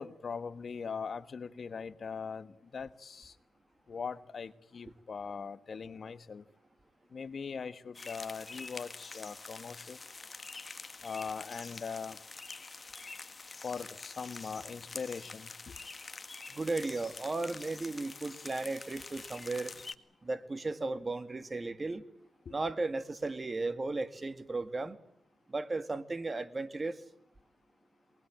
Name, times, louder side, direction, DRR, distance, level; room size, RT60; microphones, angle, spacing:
voice 1, 0.0-3.3 3.9-6.4 7.1-10.0 11.0-12.2 13.6-15.8 22.4-22.5, left 5 dB, 60° left, 13 dB, 1.3 m, -41 dB
sound 1, 7.9-19.9, left 3 dB, 40° left, 1.8 m, -46 dB
voice 2, 16.5-19.7 20.2-22.0 22.5-25.0 25.5-27.0, right 3 dB, 35° right, 12 dB, 2.1 m, -35 dB
23.5 x 20.0 x 8.8 m, 0.72 s
cardioid pair, 55°, 0 cm